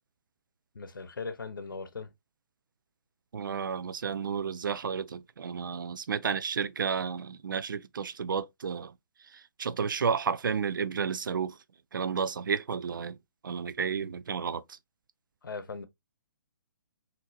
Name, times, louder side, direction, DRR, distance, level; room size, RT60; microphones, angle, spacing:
voice 1, 0.7-2.1 15.4-15.9, left 4 dB, 80° left, 0.8 m, -39 dB
voice 2, 3.3-8.9 9.6-11.5 11.9-13.2 13.4-14.6, right 6 dB, 75° right, 0.4 m, -31 dB
4.0 x 2.8 x 2.6 m
hypercardioid pair, 135°, 11 cm